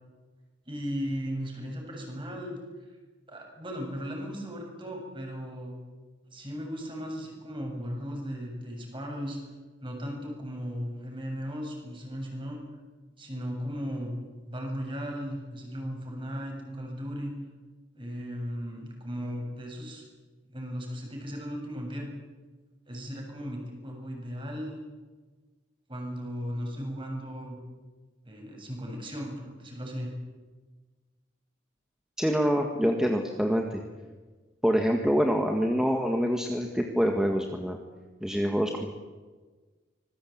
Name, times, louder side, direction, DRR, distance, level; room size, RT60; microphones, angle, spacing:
voice 1, 0.7-2.6 3.3-5.7 6.2-9.4 9.8-12.6 13.2-14.2 14.5-17.4 17.9-20.0 20.5-22.1 22.9-24.8 25.9-27.6 28.2-30.1, equal, 25° right, 1 dB, 7.5 m, -36 dB
voice 2, 32.2-33.8 34.6-37.8 38.2-38.9, equal, 5° right, 2 dB, 1.8 m, -26 dB
25.5 x 21.0 x 8.8 m, 1.3 s
head